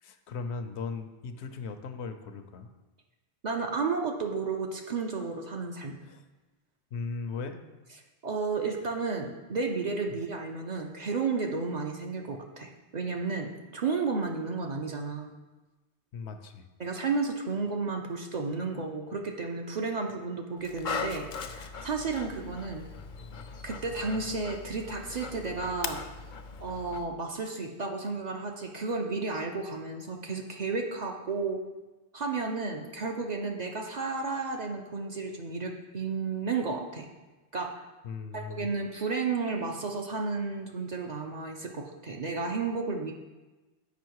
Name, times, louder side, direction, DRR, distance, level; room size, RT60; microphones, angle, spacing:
voice 1, 0.0-2.7 6.0-6.2 6.9-7.6 16.1-16.7 38.0-38.7, left 4 dB, 80° left, 8 dB, 0.9 m, -38 dB
voice 2, 3.4-6.0 8.2-15.3 16.8-22.8 23.6-26.0 26.6-31.6 32.1-37.1 37.5-37.7 38.3-43.1, right 4 dB, 50° right, 2 dB, 0.6 m, -32 dB
Dog, 20.6-27.0, left 5 dB, 60° left, 0.6 m, -39 dB
7.0 x 5.1 x 4.6 m, 1.2 s
omnidirectional pair, 1.1 m